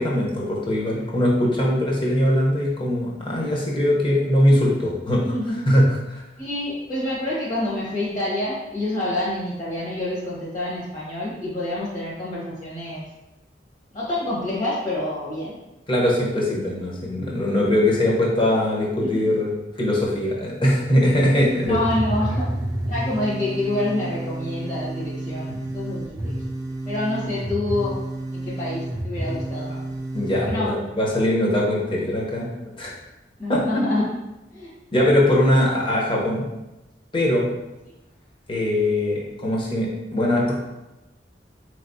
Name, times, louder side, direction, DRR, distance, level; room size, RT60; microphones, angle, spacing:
voice 1, 0.0-5.3 5.7-6.2 15.9-21.8 25.5-25.6 30.1-32.9 33.5-34.0 34.9-36.4 37.1-37.5 38.5-40.6, left 1 dB, 30° left, -3 dB, 0.8 m, -21 dB
voice 2, 5.2-5.6 6.4-13.0 13.9-15.6 19.0-19.3 21.7-22.5 22.8-26.4 26.8-28.0 28.3-29.8 30.5-30.7 33.4-34.0 34.5-34.7, left 1 dB, 45° left, -7 dB, 1.2 m, -27 dB
sound 1, 21.1-30.5, right 1 dB, 20° right, 0.4 m, -30 dB
4.0 x 3.3 x 2.6 m, 0.98 s
head